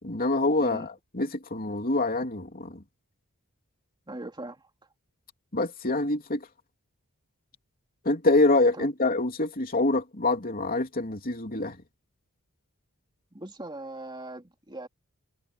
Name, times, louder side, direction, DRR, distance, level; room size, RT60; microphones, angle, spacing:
voice 1, 0.0-2.8 5.5-6.5 8.0-11.8, left 2 dB, 40° left, 3.3 m, -26 dB
voice 2, 4.1-4.6 8.7-8.9 13.3-14.9, right 1 dB, 20° right, 2.8 m, -40 dB
head